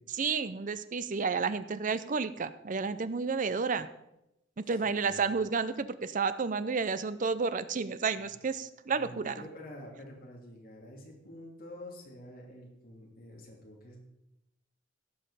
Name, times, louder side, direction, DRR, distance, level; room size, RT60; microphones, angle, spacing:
voice 1, 0.1-3.9 4.6-9.3, right 5 dB, 40° right, 14 dB, 0.5 m, -31 dB
voice 2, 4.8-5.2 8.9-14.0, left 1 dB, 45° left, -1 dB, 2.8 m, -48 dB
16.5 x 5.6 x 5.5 m, 0.88 s
head